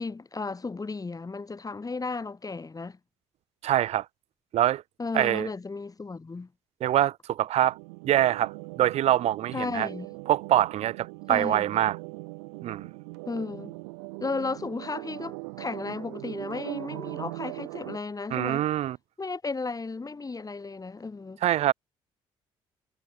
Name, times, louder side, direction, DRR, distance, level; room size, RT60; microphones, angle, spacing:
voice 1, 0.0-3.0 5.0-6.5 9.5-10.1 11.3-11.8 13.3-13.7 14.2-18.6 19.2-21.4, left 3 dB, 30° left, 5.1 m, -34 dB
voice 2, 3.6-4.1 4.5-4.8 5.1-5.5 6.8-7.8 8.0-9.9 10.3-12.0 12.6-12.9 18.3-19.0 21.4-21.7, right 12 dB, 60° right, 0.5 m, -24 dB
sound 1, 7.6-18.0, right 33 dB, 85° right, 1.4 m, -40 dB
hypercardioid pair, 55°, 13 cm